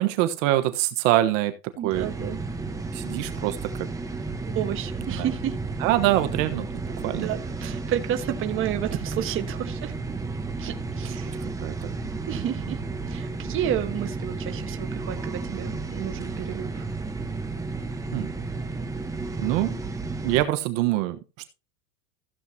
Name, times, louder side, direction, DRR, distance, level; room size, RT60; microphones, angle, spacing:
voice 1, 0.0-1.5 1.8-2.1 2.9-3.9 5.2-5.3 5.8-6.7 7.0-7.3 11.6-11.9 18.1-18.3 19.4-19.7 20.2-21.2, right 15 dB, 55° right, 9 dB, 1.2 m, -24 dB
voice 2, 1.8-2.4 4.5-5.6 7.2-9.9 10.6-11.4 12.3-12.8 13.1-16.9, right 10 dB, 25° right, 6 dB, 1.4 m, -31 dB
sound 1, 1.9-20.4, right 3 dB, 5° right, 1.0 m, -32 dB
15.0 x 8.0 x 2.8 m, 0.30 s
supercardioid pair, 160°, 47 cm